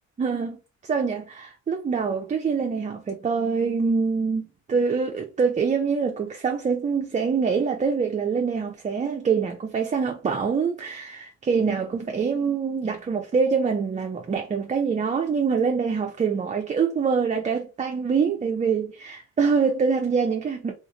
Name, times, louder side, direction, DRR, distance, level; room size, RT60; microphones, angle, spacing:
voice 1, 0.2-0.6 0.8-4.4 4.7-20.7, right 5 dB, 25° right, 0.4 m, -25 dB
2.4 x 2.4 x 2.9 m
cardioid pair, 90°, 30 cm